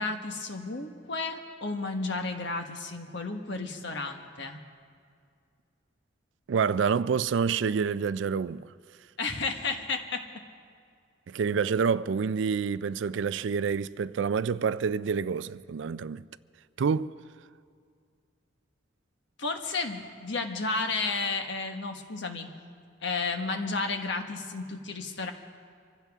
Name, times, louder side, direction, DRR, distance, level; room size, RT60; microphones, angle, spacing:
voice 1, 0.0-4.6 9.2-10.2 19.4-22.5 23.0-25.3, left 3 dB, 60° left, 1.3 m, -32 dB
voice 2, 6.5-8.7 11.3-16.2 16.8-17.1, right 6 dB, 65° right, 0.4 m, -27 dB
25.0 x 15.5 x 3.6 m
head